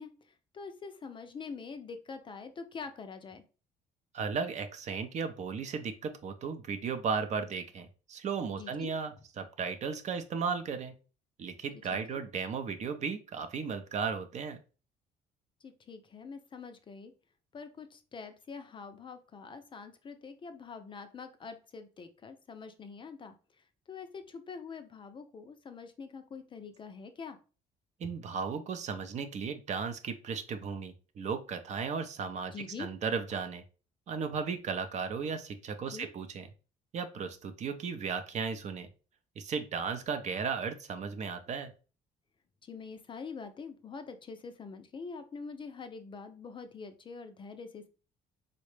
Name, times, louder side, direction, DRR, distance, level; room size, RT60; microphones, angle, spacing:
voice 1, 0.0-3.4 8.5-8.9 11.9-12.2 15.6-17.1 17.5-27.4 32.5-32.9 35.9-36.1 42.6-47.9, left 5 dB, 30° left, 8 dB, 0.4 m, -45 dB
voice 2, 4.1-10.9 11.4-14.6 28.0-33.6 34.1-36.5 36.9-38.9 39.4-41.7, right 5 dB, 45° right, 9 dB, 0.5 m, -35 dB
3.9 x 2.1 x 3.1 m, 0.35 s
cardioid pair, 110°, 17 cm